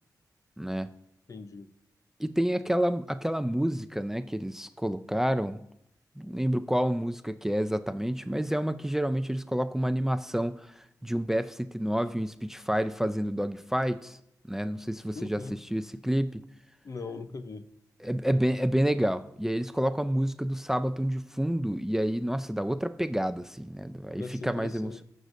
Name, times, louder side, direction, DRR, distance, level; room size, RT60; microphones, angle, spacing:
voice 1, 0.6-0.9 2.2-5.6 6.2-14.2 14.5-16.4 18.0-25.0, equal, 5° right, 12 dB, 0.4 m, -29 dB
voice 2, 1.3-1.7 15.1-15.6 16.8-17.6 24.1-25.0, left 4 dB, 55° left, 10 dB, 0.7 m, -40 dB
18.0 x 6.5 x 2.6 m, 0.76 s
cardioid pair, 75°, 7 cm